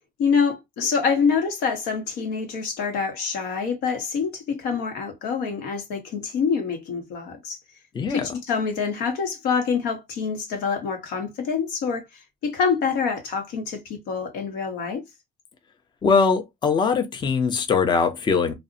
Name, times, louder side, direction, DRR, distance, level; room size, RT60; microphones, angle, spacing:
voice 1, 0.2-7.6 8.1-15.0, left 5 dB, 85° left, 0.8 m, -26 dB
voice 2, 16.0-18.5, left 5 dB, 25° left, 0.5 m, -21 dB
2.6 x 2.0 x 2.5 m
cardioid pair, 110°, 17 cm